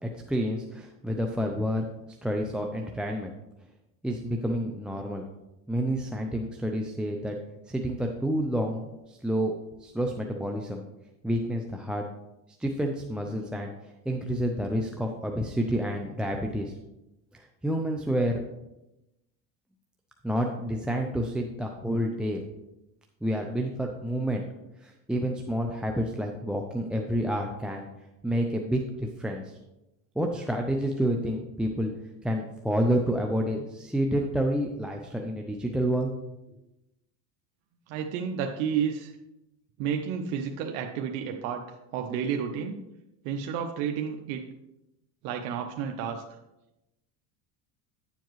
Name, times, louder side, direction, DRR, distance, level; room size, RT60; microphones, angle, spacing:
voice 1, 0.0-1.8 2.2-3.3 4.0-5.2 5.7-7.4 7.7-9.5 9.8-10.8 11.2-12.0 12.6-13.7 14.1-16.7 17.3-18.4 20.2-22.4 23.2-24.4 24.8-27.9 28.2-29.6 30.2-31.9 32.2-36.1, equal, ahead, 1 dB, 0.4 m, -29 dB
voice 2, 37.9-39.1 39.8-42.7 43.2-44.5 45.2-46.4, right 7 dB, 75° right, 3 dB, 0.9 m, -31 dB
10.0 x 7.3 x 3.1 m, 0.93 s
supercardioid pair, 125°, 43 cm